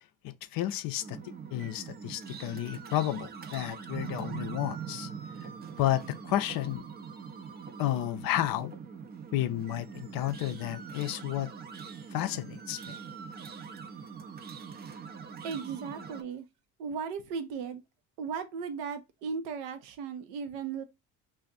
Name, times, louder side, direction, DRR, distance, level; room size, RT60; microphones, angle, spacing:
voice 1, 0.2-1.2 1.5-5.1 5.8-6.8 7.8-8.7 9.3-11.5 12.1-13.0, left 13 dB, 55° left, 0.5 m, -31 dB
sound 1, 1.0-16.2, right 6 dB, 25° right, 0.4 m, -43 dB
voice 2, 15.4-16.4 16.8-17.8 18.2-20.8, right 6 dB, 75° right, 0.7 m, -36 dB
2.5 x 2.4 x 3.9 m
hypercardioid pair, 65°, 43 cm